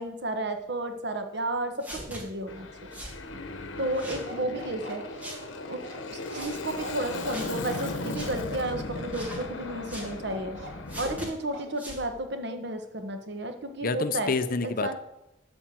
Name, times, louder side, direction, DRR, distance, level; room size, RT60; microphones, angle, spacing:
voice 1, 0.0-2.7 3.8-5.0 5.7-5.8 6.1-10.6 11.0-14.3 14.6-15.0, right 1 dB, 60° right, 6 dB, 1.4 m, -32 dB
sound 1, 1.8-2.2 2.9-3.2 3.9-4.3 5.2-5.4 6.2-6.5 7.3-7.5 8.1-8.3 9.1-9.4 9.9-10.1 10.9-11.3 11.7-12.0, equal, 10° right, 2.2 m, -41 dB
Aircraft, 2.5-11.3, left 2 dB, 85° left, 1.1 m, -37 dB
voice 2, 3.3-3.8 13.8-15.0, left 3 dB, 50° left, 12 dB, 0.6 m, -29 dB
Bark, 4.3-11.3 11.5-11.7, right 1 dB, 80° right, 2.2 m, -44 dB
11.5 x 4.4 x 7.7 m, 0.94 s
head